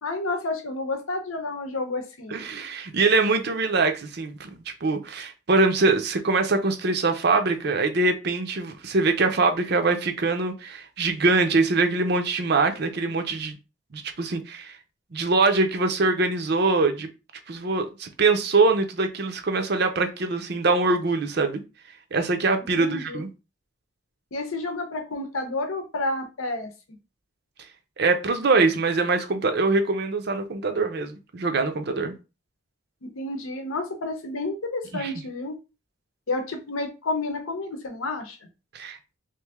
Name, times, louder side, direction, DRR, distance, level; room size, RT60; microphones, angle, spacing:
voice 1, 0.0-2.4 22.8-23.2 24.3-26.7 33.0-35.6 36.3-38.4, left 2 dB, 85° left, 0.8 m, -30 dB
voice 2, 2.3-4.5 4.8-13.6 13.9-14.7 15.1-17.1 17.5-21.6 22.1-23.3 28.0-32.1 34.9-35.1 38.7-39.0, right 3 dB, 50° right, 0.5 m, -23 dB
3.1 x 2.6 x 3.4 m
head